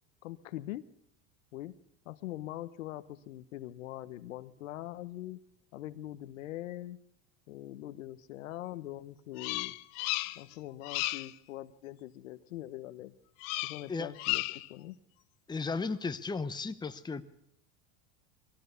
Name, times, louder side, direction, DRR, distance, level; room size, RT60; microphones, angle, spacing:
voice 1, 0.2-0.8 1.5-1.7 2.0-5.4 5.7-7.0 7.5-9.8 10.3-13.1 13.6-14.4 14.7-15.0, left 14 dB, 85° left, 13 dB, 1.1 m, -42 dB
Bird vocalization bird call bird song, 9.4-10.5 10.8-11.3 13.4-13.9 14.2-14.7, left 23 dB, 60° left, 0.8 m, -34 dB
voice 2, 15.5-17.2, left 4 dB, 10° left, 10 dB, 1.0 m, -35 dB
22.0 x 16.5 x 6.9 m, 0.75 s
supercardioid pair, 105°, 39 cm